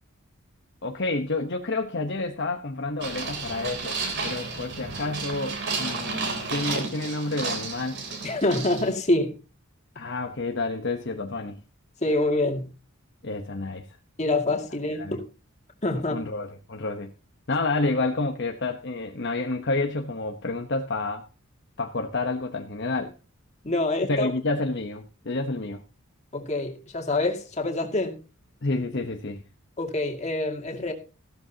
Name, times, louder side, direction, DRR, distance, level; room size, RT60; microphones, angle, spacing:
voice 1, 0.8-8.0 9.9-11.6 13.2-13.9 14.9-15.2 15.9-17.1 17.5-21.3 21.8-23.1 24.1-25.8 28.6-29.4, left 2 dB, 55° left, 1.0 m, -29 dB
sound 1, 3.0-8.9, right 4 dB, 55° right, 3.4 m, -32 dB
voice 2, 8.2-9.4 12.0-12.7 14.2-15.3 15.8-16.2 23.6-24.3 26.3-28.2 29.8-30.9, left 2 dB, 30° left, 2.3 m, -26 dB
15.0 x 12.5 x 2.9 m
head